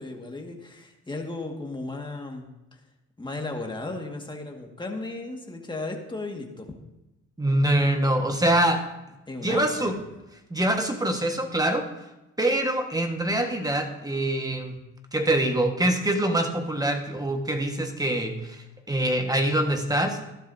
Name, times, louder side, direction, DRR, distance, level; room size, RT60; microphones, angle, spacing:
voice 1, 0.0-2.5 3.2-6.8 9.3-9.9, left 2 dB, 15° left, 2 dB, 1.9 m, -35 dB
voice 2, 7.4-8.8 9.4-9.9 10.5-11.8 12.4-14.8 15.1-20.2, right 1 dB, 10° right, 4 dB, 1.5 m, -24 dB
15.0 x 12.0 x 2.8 m, 0.97 s
cardioid pair, 90°, 30 cm